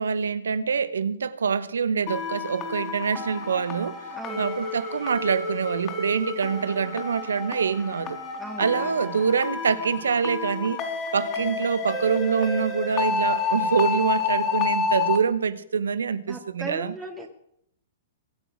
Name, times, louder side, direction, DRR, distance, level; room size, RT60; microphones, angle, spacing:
voice 1, 0.0-4.0 4.4-8.2 8.6-10.8 11.1-16.9, right 6 dB, 80° right, 1.0 m, -25 dB
sound 1, 2.1-15.2, left 5 dB, 35° left, 4.2 m, -30 dB
voice 2, 4.2-4.5 8.3-9.0 11.4-11.6 16.3-17.3, right 2 dB, 5° right, 2.0 m, -38 dB
22.5 x 8.0 x 6.4 m
hypercardioid pair, 115°, 0 cm